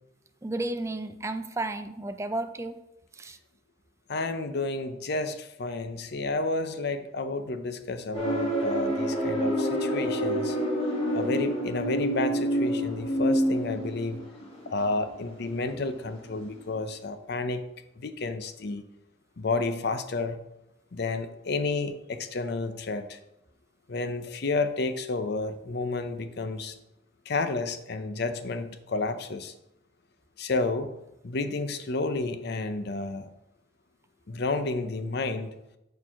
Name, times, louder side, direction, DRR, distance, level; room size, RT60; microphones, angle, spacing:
voice 1, 0.4-2.8 3.2-3.4, right 2 dB, 15° right, 9 dB, 0.4 m, -32 dB
voice 2, 4.1-10.6 11.1-14.2 14.7-17.6 18.0-18.8 19.4-20.4 20.9-23.2 23.9-26.7 27.3-29.5 30.4-30.9 31.2-33.3 34.3-35.5, left 3 dB, 55° left, 10 dB, 0.6 m, -31 dB
sound 1, 8.1-16.0 16.3-16.6, equal, 30° left, 2.3 m, -28 dB
6.5 x 4.6 x 5.6 m, 0.88 s
head